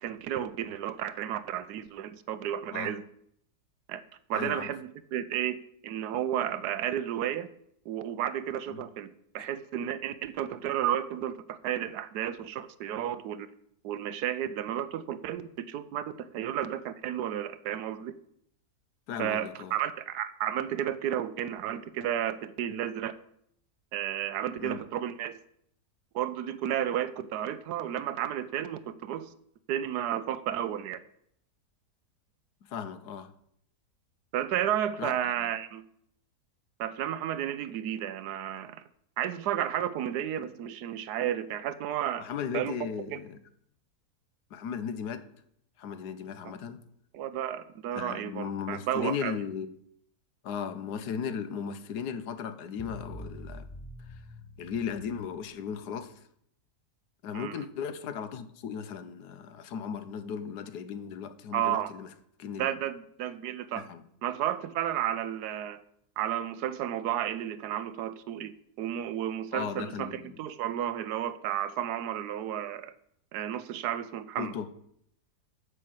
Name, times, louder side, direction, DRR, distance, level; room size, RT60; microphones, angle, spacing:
voice 1, 0.0-3.0 3.9-4.0 4.3-5.6 5.8-7.5 7.9-9.1 9.3-13.5 13.8-18.1 19.2-23.1 23.9-25.4 26.1-29.3 29.7-31.0 34.3-35.8 36.8-38.8 39.2-42.2 42.5-42.8 43.1-43.2 47.1-49.4 57.3-57.7 61.5-61.9 62.6-63.9 64.2-65.8 66.2-68.5 68.8-72.9 73.3-74.5, right 10 dB, 80° right, 13 dB, 1.2 m, -32 dB
voice 2, 4.3-4.7 8.7-8.8 9.4-9.5 19.1-19.7 24.6-24.8 32.6-33.3 35.0-35.1 42.2-43.4 44.5-45.2 45.8-46.8 47.9-49.7 50.4-53.7 54.1-54.2 54.6-56.1 57.2-62.1 62.4-62.8 63.8-64.0 69.5-70.4 74.4-74.7, left 7 dB, 85° left, 11 dB, 1.4 m, -36 dB
sound 1, 52.8-55.9, left 1 dB, 15° left, 1.0 m, -45 dB
8.4 x 5.7 x 7.8 m, 0.70 s
omnidirectional pair, 1.7 m